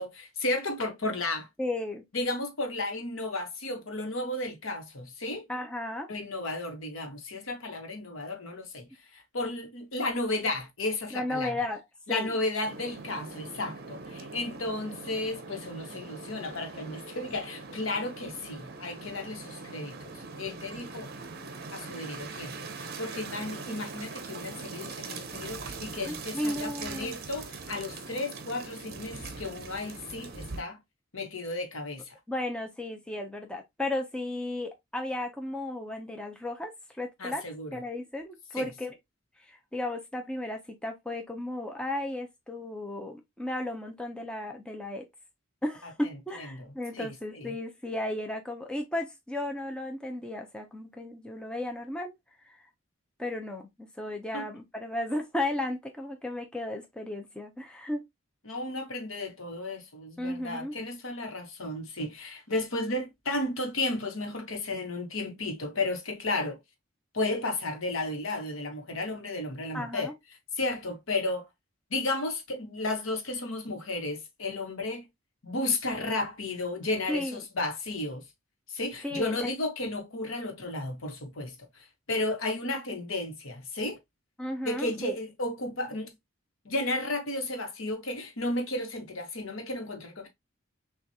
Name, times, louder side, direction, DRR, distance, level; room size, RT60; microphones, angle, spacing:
voice 1, 0.0-1.5 2.1-5.5 6.1-8.9 9.1-11.5 12.1-21.1 21.7-30.8 31.1-32.1 37.2-37.8 38.6-38.7 46.5-47.5 54.3-54.5 58.4-66.6 67.1-70.1 70.6-71.4 71.9-75.1 75.4-78.2 78.7-84.0 84.6-86.1 86.6-90.3, left 2 dB, 70° left, 1.1 m, -33 dB
voice 2, 1.6-2.0 5.5-6.1 11.1-11.8 12.1-12.3 26.1-27.2 32.3-36.7 37.0-37.4 37.7-38.9 39.4-45.1 45.6-52.1 52.4-52.6 53.2-58.0 60.2-60.8 69.7-70.1 77.1-77.4 79.0-79.5 84.4-85.2, left 1 dB, 5° left, 0.5 m, -34 dB
sound 1, 12.6-30.6, right 4 dB, 45° right, 0.6 m, -42 dB
6.1 x 2.4 x 2.7 m
head